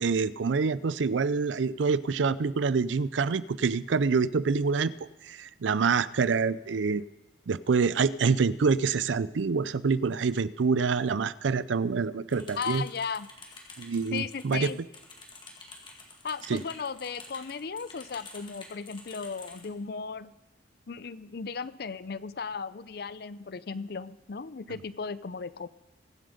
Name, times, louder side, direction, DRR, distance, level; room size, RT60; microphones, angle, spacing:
voice 1, 0.0-4.9 5.3-7.0 7.5-12.8 13.8-14.7 16.5-16.6, right 5 dB, 90° right, 18 dB, 0.5 m, -26 dB
sound 1, 12.3-19.7, left 3 dB, 25° left, 2.1 m, -48 dB
voice 2, 12.5-13.3 14.1-14.8 16.2-20.4 20.9-25.7, left 5 dB, 55° left, 17 dB, 0.5 m, -36 dB
22.5 x 7.7 x 5.1 m, 1.0 s
head